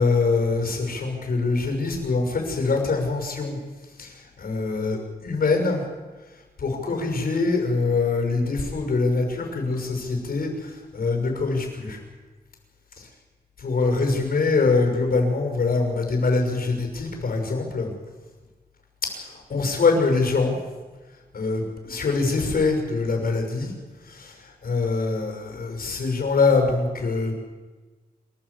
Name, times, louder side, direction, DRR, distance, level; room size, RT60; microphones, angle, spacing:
voice 1, 0.0-3.6 4.0-5.8 6.6-12.0 13.6-17.9 19.1-20.6 21.3-23.7 24.0-27.3, left 3 dB, 70° left, 3 dB, 6.4 m, -24 dB
27.0 x 13.5 x 8.5 m, 1.3 s
wide cardioid pair, 130°, 16 cm